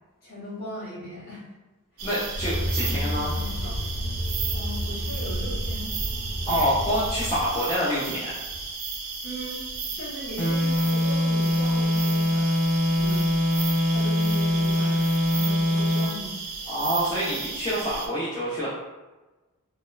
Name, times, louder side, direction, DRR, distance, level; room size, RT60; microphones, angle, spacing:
voice 1, 0.2-1.4 1.9-2.0 2.8-3.9 4.5-5.9 6.4-6.6 9.2-12.6 12.8-13.3 13.9-16.4, left 1 dB, 45° left, -8 dB, 1.1 m, -38 dB
voice 2, 2.0-3.3 6.5-8.3 16.7-18.7, equal, 15° left, -10 dB, 0.5 m, -26 dB
sound 1, 2.0-18.1, right 5 dB, 65° right, 0.4 m, -34 dB
sound 2, 2.4-7.4, equal, 65° left, 0.6 m, -30 dB
sound 3, 10.4-16.2, left 1 dB, 10° right, 0.9 m, -23 dB
3.0 x 2.0 x 2.3 m, 1.1 s
head